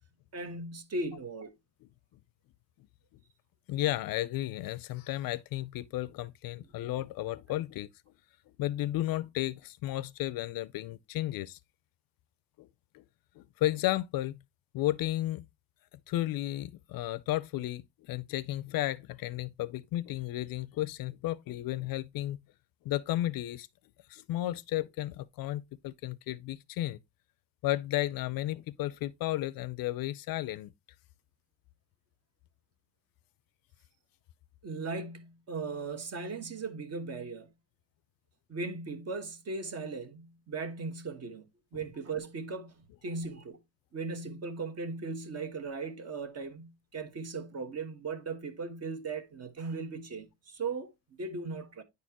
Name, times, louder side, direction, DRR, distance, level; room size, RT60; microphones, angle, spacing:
voice 1, 0.3-1.5 34.6-37.5 38.5-41.5 41.7-43.6 43.9-51.8, right 3 dB, 40° right, 1.2 m, -38 dB
voice 2, 3.7-7.9 8.6-11.6 12.6-12.7 12.9-13.0 13.4-14.4 14.7-15.5 16.1-22.4 22.8-23.7 24.1-27.0 27.6-30.7, left 15 dB, 60° left, 0.5 m, -33 dB
9.6 x 4.3 x 2.9 m
cardioid pair, 125°, 40 cm